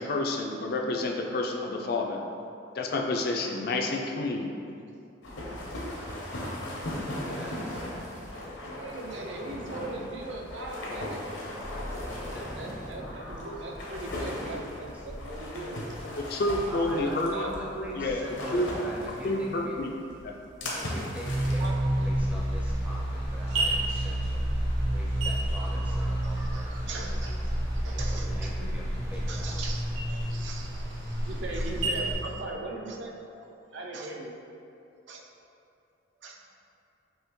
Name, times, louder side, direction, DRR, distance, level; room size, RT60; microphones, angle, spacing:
voice 1, 0.0-2.2 2.8-4.5 16.2-17.3 18.0-18.2 18.5-18.7 19.2-19.9 20.2-20.3, left 2 dB, 50° left, 1 dB, 0.4 m, -29 dB
sound 1, 5.2-21.7, left 1 dB, 75° left, 0.8 m, -38 dB
voice 2, 6.9-8.0 14.1-15.0 16.7-19.8 20.6-24.4 24.9-27.2 27.9-29.6, equal, 5° right, -4 dB, 0.5 m, -42 dB
voice 3, 8.7-11.2 12.3-15.8 17.3-17.6 21.6-21.8 26.2-28.5 29.3-33.2 33.7-34.4 35.1-35.2 36.2-36.4, right 2 dB, 70° right, 0 dB, 0.5 m, -40 dB
sound 2, 11.6-19.1, equal, 45° right, 0.9 m, -45 dB
sound 3, 21.2-32.2, right 1 dB, 90° right, 0.9 m, -29 dB
5.5 x 2.9 x 3.0 m, 2.6 s
head